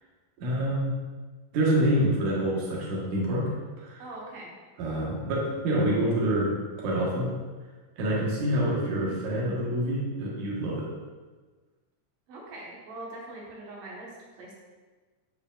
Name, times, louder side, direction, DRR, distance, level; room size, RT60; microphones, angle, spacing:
voice 1, 0.4-1.0 1.5-3.5 3.8-4.0 4.8-7.3 8.0-10.9, right 1 dB, 70° right, -4 dB, 2.7 m, -27 dB
voice 2, 4.0-4.5 12.3-14.1 14.4-14.5, right 2 dB, 90° right, -4 dB, 3.0 m, -42 dB
12.5 x 4.9 x 2.4 m, 1.3 s
omnidirectional pair, 3.6 m